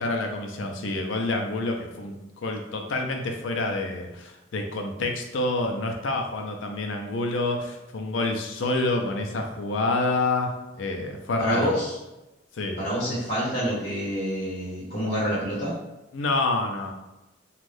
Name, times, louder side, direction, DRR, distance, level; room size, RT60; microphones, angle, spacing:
voice 1, 0.0-11.7 12.5-12.8 16.1-16.9, left 2 dB, 85° left, 3 dB, 0.5 m, -28 dB
voice 2, 11.4-12.0 12.8-15.7, equal, 45° left, -8 dB, 0.9 m, -27 dB
2.6 x 2.3 x 3.3 m, 0.99 s
head